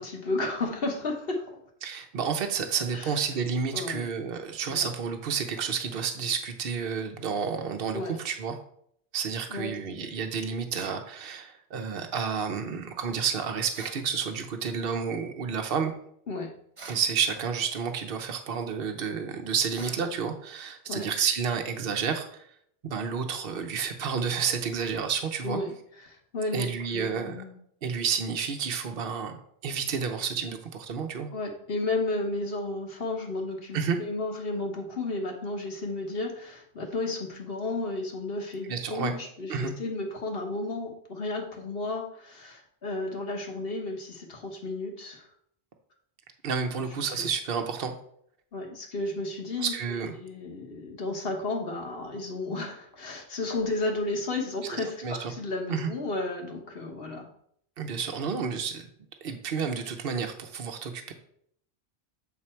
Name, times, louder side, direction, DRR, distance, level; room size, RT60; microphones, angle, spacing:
voice 1, 0.0-1.6 2.9-3.1 3.7-4.1 4.7-4.9 7.9-8.2 9.5-10.1 16.3-16.5 20.9-21.1 25.4-25.7 26.0-27.6 31.3-45.3 46.8-46.9 47.1-47.3 48.5-49.7 50.0-57.3, left 2 dB, 65° left, 2 dB, 1.5 m, -33 dB
voice 2, 1.8-8.6 9.1-15.9 16.8-22.5 22.8-25.6 26.5-27.4 27.8-29.4 29.6-31.3 33.7-34.0 38.7-39.1 39.5-39.7 46.4-47.9 49.6-50.1 54.7-55.3 55.7-55.9 57.8-58.9 59.2-61.1, right 6 dB, 65° right, 6 dB, 1.0 m, -30 dB
sound 1, 10.7-11.0 13.7-14.1 16.8-17.1 19.7-20.1, right 4 dB, 35° right, 0.7 m, -44 dB
7.2 x 4.1 x 4.4 m, 0.67 s
omnidirectional pair, 1.0 m